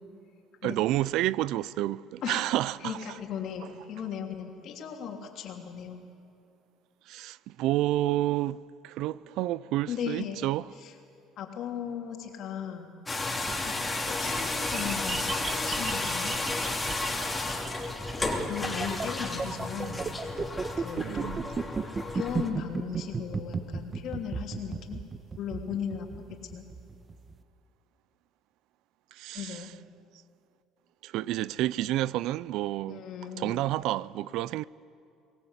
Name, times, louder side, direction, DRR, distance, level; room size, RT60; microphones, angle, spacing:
voice 1, 0.6-3.0 7.1-10.7 21.0-21.5 29.1-29.7 31.0-33.0 33.4-34.6, right 15 dB, 75° right, 0.4 m, -30 dB
voice 2, 2.8-6.0 9.9-10.5 10.8-10.9 11.4-12.9 13.7-16.4 18.5-20.0 20.8-21.2 22.1-25.0 25.4-26.7 29.3-29.7 32.9-33.6, left 8 dB, 60° left, 3.1 m, -37 dB
sound 1, 13.1-22.5, left 2 dB, 15° left, 3.2 m, -32 dB
sound 2, 13.5-27.3, right 4 dB, 30° right, 1.2 m, -35 dB
24.0 x 19.0 x 8.3 m
supercardioid pair, 95°, 0 cm